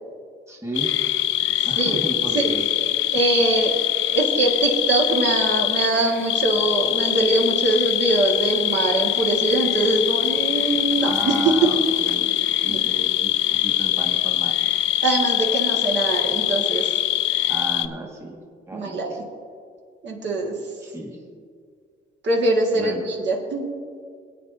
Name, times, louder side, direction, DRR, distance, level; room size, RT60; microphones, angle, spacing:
voice 1, 0.5-1.0 1.6-2.7 3.1-3.2 11.0-12.3 12.6-14.6 17.5-18.4 18.7-19.2 20.8-21.2 22.7-23.1, right 2 dB, 15° right, 0 dB, 1.7 m, -34 dB
sound 1, 0.8-17.9, left 13 dB, 80° left, 0.5 m, -23 dB
voice 2, 1.6-2.0 2.3-2.5 3.1-3.7 4.1-11.3 12.7-12.8 15.0-17.0 18.7-19.1 20.0-20.5 22.2-23.7, right 2 dB, 65° right, -1 dB, 1.7 m, -23 dB
19.5 x 9.0 x 2.7 m, 2.2 s
cardioid pair, 90°, 20 cm